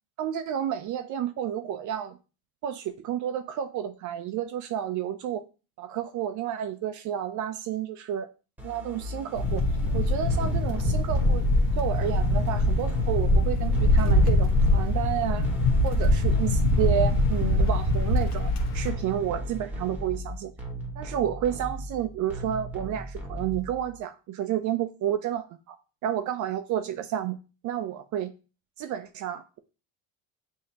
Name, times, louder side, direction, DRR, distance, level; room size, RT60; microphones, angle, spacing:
voice 1, 0.2-2.2 2.6-5.4 5.8-8.3 8.6-9.6 9.9-11.5 11.8-15.5 15.8-20.5 21.0-25.8 26.0-27.4 27.6-28.3 28.8-29.6, right 10 dB, 50° right, 0.5 m, -31 dB
sound 1, 8.6-24.0, equal, 5° right, 1.2 m, -37 dB
sound 2, 9.3-18.9, left 1 dB, 75° left, 1.1 m, -23 dB
6.4 x 2.7 x 2.8 m
supercardioid pair, 85°, 37 cm